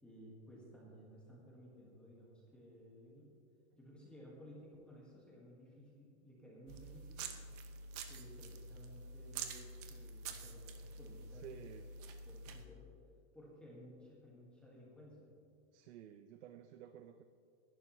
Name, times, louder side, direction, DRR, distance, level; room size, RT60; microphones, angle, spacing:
voice 1, 0.0-3.3 3.8-7.2 8.1-11.6 12.2-12.9 13.3-15.3, equal, 5° left, -6 dB, 1.6 m, -57 dB
sound 1, 6.7-12.6, right 4 dB, 35° right, 0.8 m, -48 dB
voice 2, 11.4-11.8 15.7-17.2, right 9 dB, 80° right, 8 dB, 0.7 m, -53 dB
20.0 x 11.0 x 3.1 m, 2.4 s
supercardioid pair, 175°, 34 cm